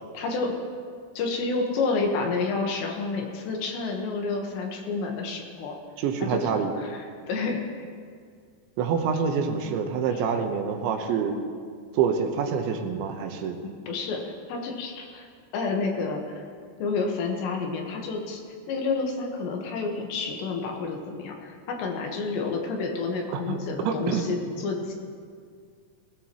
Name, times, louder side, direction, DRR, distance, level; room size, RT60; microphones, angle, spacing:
voice 1, 0.1-0.5 1.2-5.8 6.2-7.6 10.1-10.2 13.6-15.3 15.5-16.4 16.8-18.4 18.7-24.9, left 4 dB, 75° left, 1 dB, 3.6 m, -29 dB
voice 2, 6.0-6.7 8.8-11.4 11.9-13.6 23.3-23.6 23.8-24.3, right 6 dB, 85° right, 5 dB, 3.3 m, -26 dB
20.5 x 16.5 x 3.1 m, 2.1 s
omnidirectional pair, 5.2 m